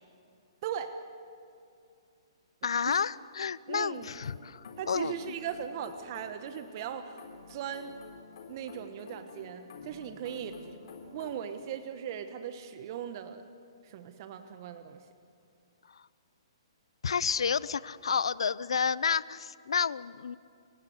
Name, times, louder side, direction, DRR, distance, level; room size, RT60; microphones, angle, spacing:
voice 1, 0.6-1.0 2.9-3.0 3.7-4.1 4.8-7.2 7.5-8.0 8.5-10.6 11.1-13.4 13.8-15.0, right 9 dB, 45° right, 9 dB, 1.3 m, -38 dB
voice 2, 2.6-5.2 17.0-20.4, left 6 dB, 75° left, 20 dB, 0.6 m, -30 dB
sound 1, 3.9-11.3, left 4 dB, 60° left, 4.1 m, -50 dB
30.0 x 17.0 x 8.0 m, 2.5 s
hypercardioid pair, 135°, 3 cm